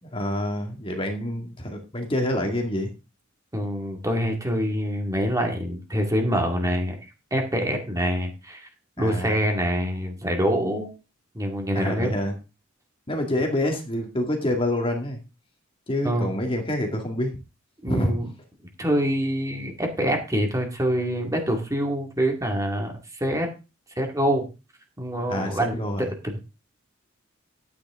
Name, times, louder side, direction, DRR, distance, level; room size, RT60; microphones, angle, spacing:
voice 1, 0.0-2.9 9.0-9.4 11.7-12.3 13.1-15.2 15.9-17.4 17.9-18.1 25.3-26.0, left 1 dB, 25° left, 3 dB, 2.1 m, -27 dB
voice 2, 3.5-7.0 7.3-8.7 9.0-10.9 11.3-12.2 16.0-16.3 17.8-18.3 18.8-23.5 24.0-24.4 25.0-26.4, equal, 15° right, 2 dB, 2.2 m, -25 dB
11.5 x 9.3 x 3.7 m, 0.29 s
head